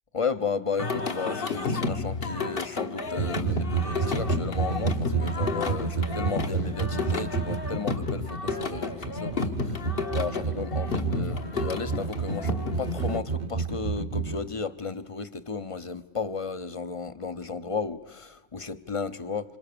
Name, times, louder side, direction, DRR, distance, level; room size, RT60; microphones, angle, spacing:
voice 1, 0.1-19.6, left 5 dB, 30° left, 0.9 m, -34 dB
Singing, 0.8-13.2, left 3 dB, 50° left, 1.6 m, -31 dB
sound 1, 3.2-14.4, right 5 dB, 40° right, 1.1 m, -30 dB
28.0 x 26.5 x 6.9 m
omnidirectional pair, 1.2 m